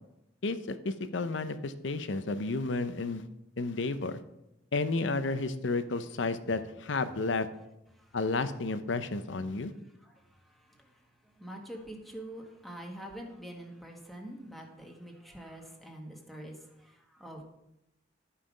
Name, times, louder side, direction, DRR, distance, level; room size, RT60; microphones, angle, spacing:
voice 1, 0.4-3.3 3.6-4.2 4.7-7.5 8.1-9.7, left 3 dB, 70° left, 11 dB, 0.7 m, -32 dB
voice 2, 9.7-17.4, right 1 dB, ahead, 0 dB, 1.5 m, -46 dB
11.5 x 5.7 x 5.0 m, 0.88 s
head